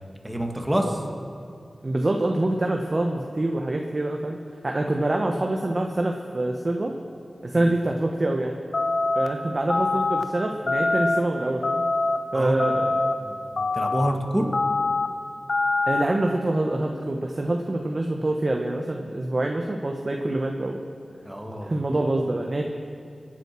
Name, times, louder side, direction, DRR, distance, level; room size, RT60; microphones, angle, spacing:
voice 1, 0.2-1.0 7.5-7.6 12.3-12.7 13.2-14.5 21.2-21.7, equal, 10° right, 2 dB, 2.2 m, -27 dB
voice 2, 1.8-4.4 4.6-6.9 7.4-8.5 9.1-11.8 12.3-13.0 15.9-20.8 21.6-22.6, right 2 dB, 45° right, 2 dB, 1.3 m, -25 dB
sound 1, 8.7-9.3 9.7-10.2 10.7-11.2 11.6-12.2 12.6-13.1 13.6-14.1 14.5-15.1 15.5-16.0, left 3 dB, 65° left, 0.9 m, -23 dB
24.5 x 9.2 x 6.2 m, 2.4 s
wide cardioid pair, 55°, 0 cm